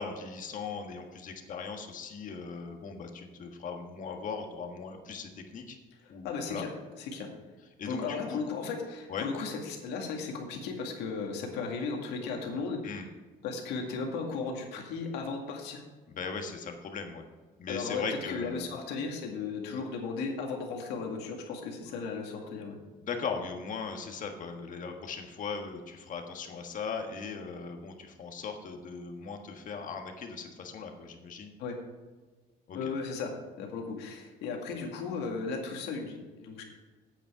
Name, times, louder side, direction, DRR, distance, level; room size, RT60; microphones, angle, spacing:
voice 1, 0.0-5.8 6.1-6.6 7.8-8.4 9.1-9.3 12.8-13.1 16.1-17.2 17.6-18.7 23.0-31.5 32.7-32.9, left 5 dB, 50° left, 4 dB, 1.6 m, -39 dB
voice 2, 6.0-6.7 7.0-7.3 7.8-13.0 13.4-15.8 17.7-22.8 31.6-31.8 32.7-33.3 33.6-36.6, left 4 dB, 90° left, 2 dB, 2.0 m, -35 dB
8.7 x 8.6 x 4.8 m, 1.3 s
cardioid pair, 110°, 17 cm